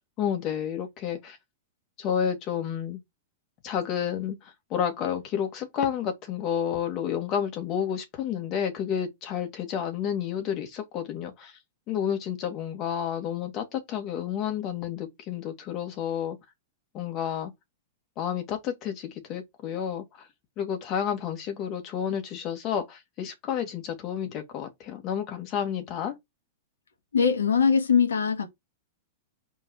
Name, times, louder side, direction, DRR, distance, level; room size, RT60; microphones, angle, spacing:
voice 1, 0.2-1.4 2.0-3.0 3.6-11.5 11.9-16.4 16.9-17.5 18.2-20.3 20.6-26.1, left 8 dB, 40° left, 2.2 m, -30 dB
voice 2, 27.1-28.5, left 6 dB, 80° left, 1.7 m, -21 dB
5.3 x 4.1 x 4.6 m
hypercardioid pair, 100°, 0 cm